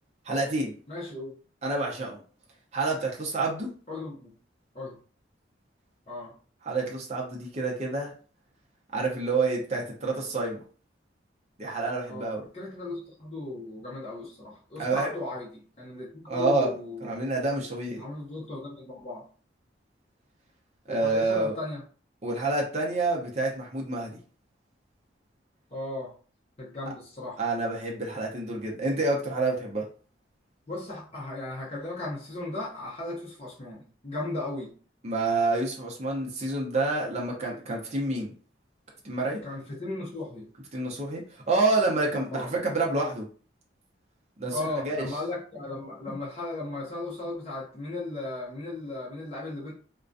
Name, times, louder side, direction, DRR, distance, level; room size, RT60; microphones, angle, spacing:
voice 1, 0.2-0.7 1.6-2.2 2.7-3.7 6.6-8.1 8.9-10.6 11.6-12.4 14.8-15.1 16.3-16.7 17.0-18.0 20.9-21.6 22.2-24.2 27.4-29.8 35.0-38.3 39.0-39.4 40.7-43.3 44.4-45.1, right 3 dB, 35° right, -2 dB, 0.5 m, -28 dB
voice 2, 0.9-1.3 3.9-4.3 4.7-4.9 6.1-6.3 10.0-10.2 12.1-17.1 18.0-19.3 20.9-21.8 25.7-26.1 26.6-27.4 30.7-34.7 39.4-40.5 42.3-42.5 44.5-49.7, left 2 dB, 30° left, -5 dB, 0.6 m, -36 dB
2.4 x 2.2 x 2.5 m, 0.41 s
head